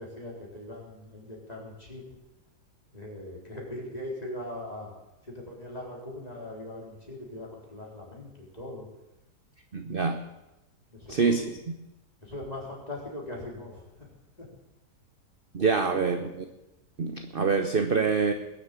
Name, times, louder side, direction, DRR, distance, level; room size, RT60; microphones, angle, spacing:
voice 1, 0.0-2.0 2.9-4.9 5.2-8.9 10.9-11.5 12.2-14.1 14.4-14.5, left 1 dB, 20° left, -2 dB, 4.0 m, -40 dB
voice 2, 9.7-10.2 11.1-11.4 15.5-16.4 17.0-18.3, right 5 dB, 40° right, 6 dB, 0.9 m, -25 dB
21.0 x 7.5 x 8.3 m, 0.94 s
omnidirectional pair, 1.8 m